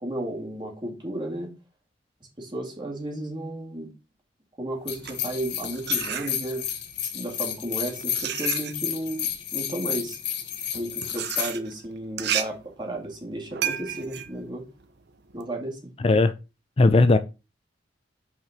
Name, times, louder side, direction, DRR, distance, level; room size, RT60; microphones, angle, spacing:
voice 1, 0.0-1.5 2.4-3.9 4.6-6.6 7.0-10.2 10.7-14.6 15.3-15.9, right 1 dB, 25° right, 2.6 m, -33 dB
sound 1, 4.8-6.8 7.5-15.4, right 9 dB, 60° right, 0.8 m, -34 dB
sound 2, 4.9-11.5, left 10 dB, 65° left, 1.3 m, -31 dB
voice 2, 16.8-17.2, left 3 dB, 30° left, 0.5 m, -17 dB
6.5 x 4.9 x 5.1 m
head